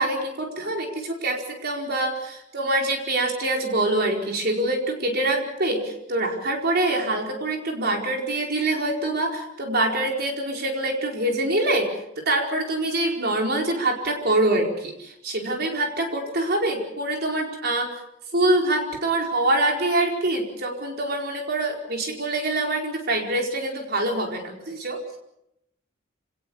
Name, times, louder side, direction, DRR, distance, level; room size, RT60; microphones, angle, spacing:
voice 1, 0.0-11.9 12.2-17.9 18.3-25.2, right 2 dB, 50° right, 1 dB, 4.7 m, -25 dB
27.0 x 18.5 x 7.1 m, 0.82 s
head